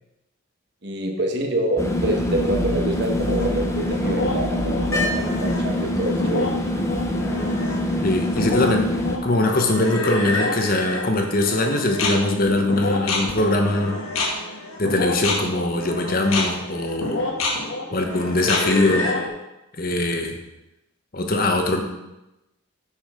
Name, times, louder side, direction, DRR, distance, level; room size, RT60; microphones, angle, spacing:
voice 1, 0.8-6.5, right 1 dB, 55° right, 2 dB, 1.2 m, -26 dB
sound 1, 1.8-9.2, left 1 dB, 15° left, 0.7 m, -24 dB
sound 2, 3.4-19.3, left 2 dB, 85° left, 1.2 m, -28 dB
voice 2, 8.0-8.9 9.2-14.0 14.8-17.3 17.9-19.1 19.8-20.3 21.1-21.8, left 2 dB, 45° left, 4 dB, 1.0 m, -22 dB
6.6 x 6.2 x 4.9 m, 0.95 s
head